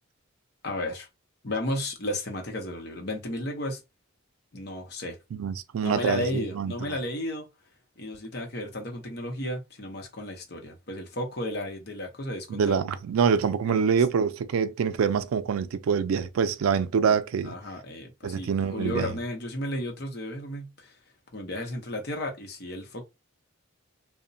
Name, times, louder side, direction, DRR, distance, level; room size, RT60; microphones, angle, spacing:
voice 1, 0.6-1.1 1.4-3.8 4.5-5.2 5.8-7.4 8.0-12.9 13.6-14.0 17.0-17.2 17.4-21.0 21.3-23.0, left 1 dB, 50° left, 0.8 m, -33 dB
voice 2, 5.3-6.7 12.5-17.5 18.2-19.1, right 6 dB, 85° right, 0.4 m, -25 dB
2.9 x 2.1 x 2.6 m
head